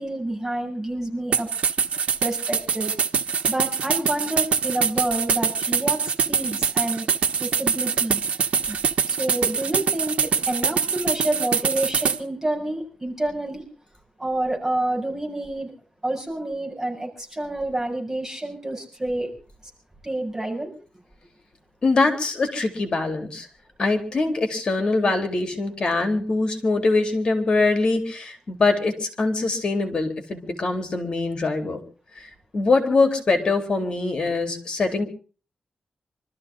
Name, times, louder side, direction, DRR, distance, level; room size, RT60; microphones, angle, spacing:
voice 1, 0.0-1.5 2.2-2.9 3.5-7.1 7.4-8.8 9.1-13.6 14.2-15.7 16.0-19.3 20.0-20.7, right 1 dB, 15° right, -1 dB, 7.1 m, -28 dB
sound 1, 1.3-12.2, right 6 dB, 90° right, 1.4 m, -24 dB
voice 2, 21.8-23.5 23.8-31.8 32.2-35.1, left 3 dB, 45° left, 6 dB, 3.8 m, -23 dB
26.0 x 14.0 x 3.8 m, 0.38 s
wide cardioid pair, 145°, 2 cm